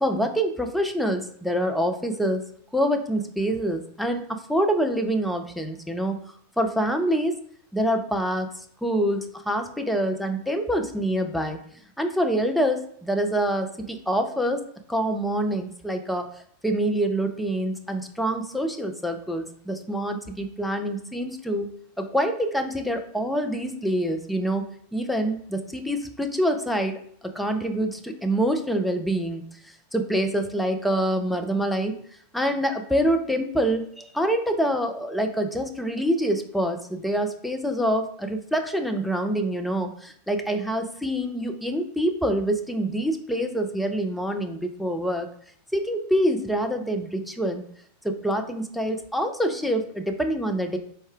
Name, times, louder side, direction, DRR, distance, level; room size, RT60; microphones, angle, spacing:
voice 1, 0.0-2.4 2.7-6.2 6.6-7.3 7.7-11.6 12.0-14.6 14.9-16.3 16.6-24.6 24.9-29.4 29.9-32.0 32.3-45.3 45.7-47.7 48.0-50.8, right 1 dB, ahead, 5 dB, 0.4 m, -26 dB
4.2 x 2.2 x 3.4 m, 0.63 s
figure-of-eight pair, 90°, 0 cm